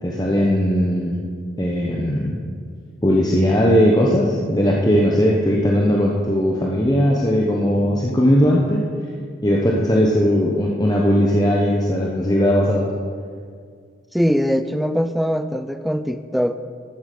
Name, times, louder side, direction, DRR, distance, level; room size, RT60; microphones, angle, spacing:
voice 1, 0.0-1.2 1.6-2.4 3.0-8.8 9.4-12.9, equal, 20° left, -3 dB, 1.0 m, -18 dB
voice 2, 14.1-16.6, equal, ahead, 10 dB, 0.4 m, -21 dB
13.0 x 8.0 x 6.7 m, 2.1 s
head